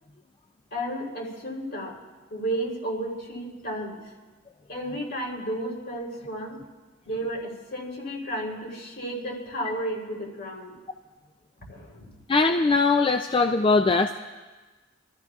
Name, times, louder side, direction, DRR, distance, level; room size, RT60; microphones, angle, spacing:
voice 1, 0.7-2.0 2.3-4.1 4.7-6.6 7.0-10.7 11.7-12.2, right 1 dB, 60° left, -2 dB, 3.5 m, -33 dB
voice 2, 12.3-14.2, left 3 dB, 25° left, 6 dB, 0.3 m, -21 dB
28.5 x 14.0 x 2.4 m, 1.3 s
head